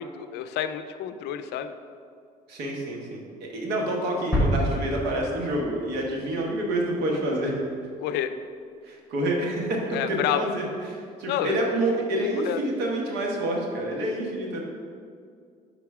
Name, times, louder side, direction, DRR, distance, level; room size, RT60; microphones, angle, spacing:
voice 1, 0.0-1.7 8.0-8.3 9.9-10.4 11.3-11.5 12.5-12.6, left 10 dB, 80° left, 10 dB, 0.4 m, -29 dB
voice 2, 2.5-7.5 8.8-14.6, right 1 dB, 80° right, -1 dB, 1.2 m, -28 dB
sound 1, 4.3-6.2, equal, ahead, 1.1 m, -27 dB
5.9 x 3.9 x 4.8 m, 2.2 s
cardioid pair, 110°, 17 cm